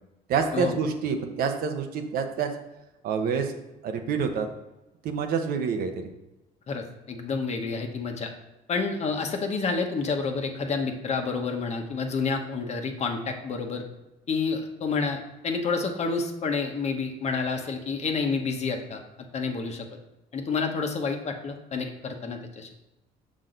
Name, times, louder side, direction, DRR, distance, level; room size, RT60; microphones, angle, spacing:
voice 1, 0.3-2.5 3.0-3.5 3.8-4.5 5.0-6.0, right 6 dB, 65° right, 5 dB, 1.0 m, -27 dB
voice 2, 6.7-8.3 8.7-13.8 14.3-19.0 19.3-19.9 20.3-22.7, left 4 dB, 45° left, 4 dB, 1.1 m, -29 dB
6.3 x 6.2 x 3.9 m, 1.0 s
cardioid pair, 100°, 16 cm